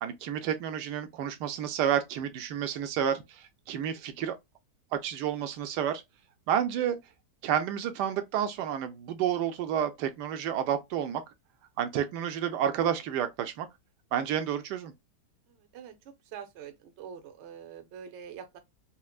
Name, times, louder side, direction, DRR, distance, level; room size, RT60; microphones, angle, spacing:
voice 1, 0.0-4.3 4.9-6.0 6.5-7.0 7.4-11.2 11.8-13.7 14.1-14.9, right 9 dB, 80° right, 1.2 m, -30 dB
voice 2, 16.3-18.6, right 8 dB, 60° right, 0.8 m, -44 dB
4.3 x 2.1 x 2.3 m
omnidirectional pair, 1.8 m